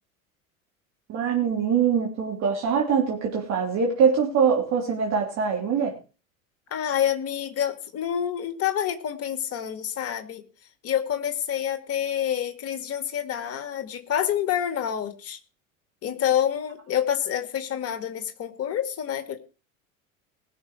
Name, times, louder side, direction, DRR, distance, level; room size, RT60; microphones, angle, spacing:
voice 1, 1.1-5.9, right 6 dB, 40° right, 0 dB, 3.0 m, -23 dB
voice 2, 6.7-10.4 10.8-15.4 16.0-19.4, left 9 dB, 35° left, 8 dB, 2.0 m, -27 dB
19.5 x 6.6 x 4.6 m, 0.33 s
figure-of-eight pair, 70°, 42 cm